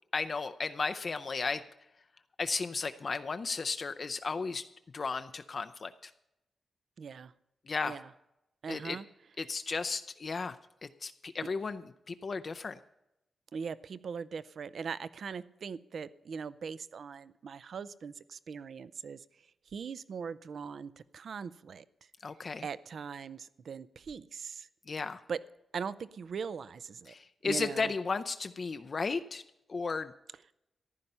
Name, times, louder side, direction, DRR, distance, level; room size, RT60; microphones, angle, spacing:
voice 1, 0.1-1.6 2.4-4.7 4.9-6.1 7.7-8.0 8.7-9.0 9.4-10.6 11.0-12.8 22.2-22.7 24.9-25.2 27.1-29.4 29.7-30.1, left 4 dB, 40° left, 9 dB, 0.5 m, -34 dB
voice 2, 7.0-7.3 7.8-8.1 8.6-9.0 13.5-19.2 19.7-21.8 22.6-24.7 25.3-25.4 25.7-27.2 27.4-27.9, right 6 dB, 60° right, 17 dB, 0.5 m, -40 dB
14.5 x 11.0 x 5.5 m, 0.87 s
wide cardioid pair, 135°, 0 cm